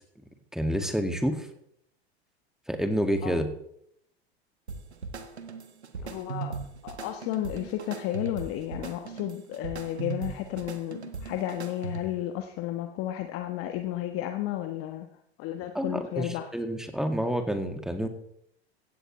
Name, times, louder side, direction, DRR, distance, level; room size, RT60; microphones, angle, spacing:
voice 1, 0.5-1.5 2.7-3.5 15.7-18.1, equal, ahead, 6 dB, 2.1 m, -28 dB
sound 1, 4.7-12.3, right 4 dB, 85° right, 1.4 m, -39 dB
voice 2, 6.0-15.1 15.4-16.5, left 13 dB, 45° left, 7 dB, 1.3 m, -33 dB
17.0 x 16.0 x 3.3 m, 0.71 s
figure-of-eight pair, 80°, 32 cm